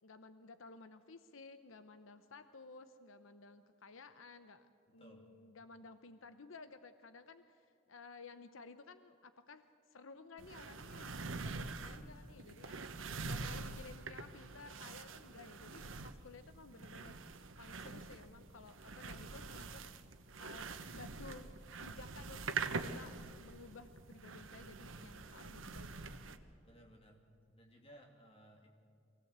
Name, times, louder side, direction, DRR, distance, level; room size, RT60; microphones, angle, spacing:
voice 1, 0.0-12.8 13.2-19.8 20.4-23.2 23.4-25.9, left 4 dB, 80° left, 10 dB, 0.8 m, -55 dB
voice 2, 4.9-5.3 11.8-12.5 18.9-19.4 26.6-27.2 27.6-28.7, equal, 30° left, 1 dB, 2.7 m, -61 dB
sound 1, 10.4-26.4, right 4 dB, 80° right, 1.1 m, -45 dB
23.0 x 16.5 x 8.1 m, 2.4 s
head